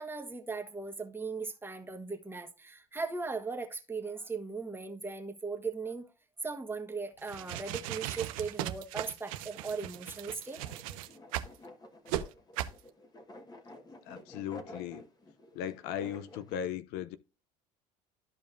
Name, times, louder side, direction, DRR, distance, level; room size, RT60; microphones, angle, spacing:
voice 1, 0.0-6.1 6.4-10.6, right 4 dB, 10° right, 1.4 m, -38 dB
sound 1, 7.2-11.6 12.1-12.2 12.6-12.8, right 13 dB, 80° right, 0.7 m, -37 dB
sound 2, 9.7-16.5, left 1 dB, 25° left, 1.5 m, -51 dB
voice 2, 14.0-15.0 15.5-17.2, left 9 dB, 65° left, 0.6 m, -37 dB
12.5 x 5.1 x 2.6 m
hypercardioid pair, 85°, 17 cm